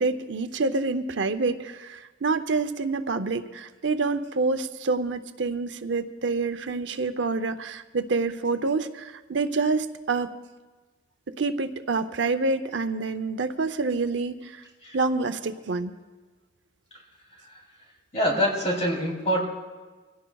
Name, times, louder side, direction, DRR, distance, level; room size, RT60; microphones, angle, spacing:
voice 1, 0.0-10.3 11.4-14.6 14.9-15.9, right 3 dB, 70° right, 10 dB, 0.7 m, -27 dB
voice 2, 18.1-19.4, equal, 35° left, -2 dB, 3.3 m, -25 dB
24.0 x 16.5 x 2.3 m, 1.3 s
head